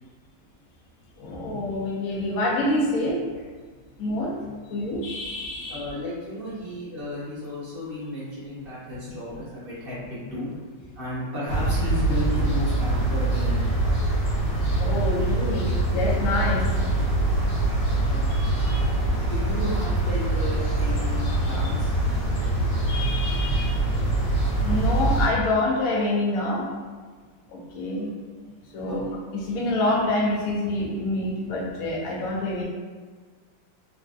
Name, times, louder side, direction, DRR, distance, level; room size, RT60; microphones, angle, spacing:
voice 1, 1.2-3.2 4.0-4.3 4.7-5.9 9.1-9.2 14.8-16.7 18.3-18.9 21.3-21.4 22.9-23.8 24.6-26.7 27.5-28.1 28.7-32.6, left 2 dB, 70° left, -4 dB, 0.9 m, -27 dB
voice 2, 5.7-10.5 10.9-13.7 18.0-18.4 19.3-21.9 28.8-29.0, left 1 dB, 55° right, -9 dB, 0.6 m, -33 dB
sound 1, 11.5-25.3, right 2 dB, 55° left, 1.3 m, -24 dB
3.2 x 2.6 x 2.4 m, 1.5 s
omnidirectional pair, 2.0 m